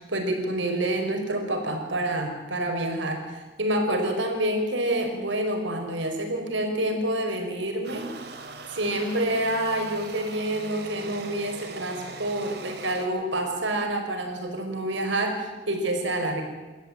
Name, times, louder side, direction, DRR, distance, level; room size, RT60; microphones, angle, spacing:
voice 1, 0.0-8.0 8.7-16.5, right 1 dB, 90° right, 4 dB, 5.1 m, -28 dB
sound 1, 7.8-13.1, right 3 dB, 60° right, 2.7 m, -40 dB
27.5 x 14.0 x 9.9 m, 1.3 s
head